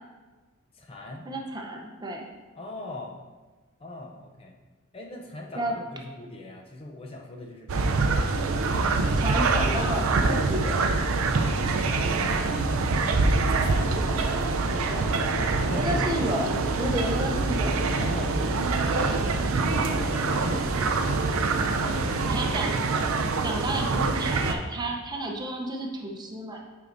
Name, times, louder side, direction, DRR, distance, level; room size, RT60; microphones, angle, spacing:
voice 1, 0.7-1.3 2.6-3.2 3.8-4.5 4.9-8.1 11.8-13.9 15.1-16.1 17.9-21.1, left 1 dB, 30° left, 1 dB, 0.5 m, -39 dB
voice 2, 1.3-2.3 5.5-5.7 9.2-10.9 14.9-15.1 15.7-17.9 22.3-22.8 23.4-26.6, right 1 dB, 20° right, 1 dB, 0.6 m, -31 dB
sound 1, 7.7-24.5, right 3 dB, 85° right, 0.5 m, -25 dB
8.2 x 4.6 x 2.6 m, 1.3 s
head